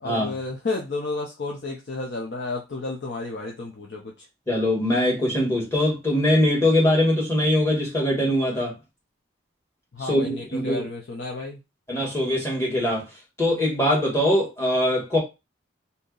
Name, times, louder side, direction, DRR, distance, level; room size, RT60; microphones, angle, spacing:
voice 1, 0.0-4.3 9.9-11.6, left 3 dB, 65° left, 0.6 m, -32 dB
voice 2, 4.5-8.7 10.0-10.9 11.9-13.1 13.4-15.2, left 1 dB, 15° left, 1.3 m, -22 dB
2.8 x 2.7 x 3.8 m
head